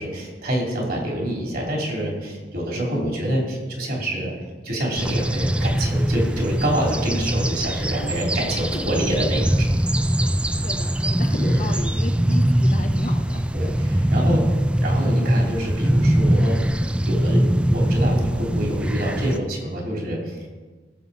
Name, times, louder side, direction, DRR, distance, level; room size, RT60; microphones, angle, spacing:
voice 1, 0.0-4.3 4.6-9.8 11.3-11.7 13.5-20.5, right 1 dB, 60° right, -1 dB, 3.1 m, -26 dB
sound 1, 5.0-19.4, right 1 dB, 5° right, 0.3 m, -22 dB
voice 2, 10.0-10.3 10.6-13.4 15.0-15.3, left 1 dB, 45° left, 6 dB, 0.8 m, -34 dB
17.0 x 7.4 x 4.1 m, 1.3 s
head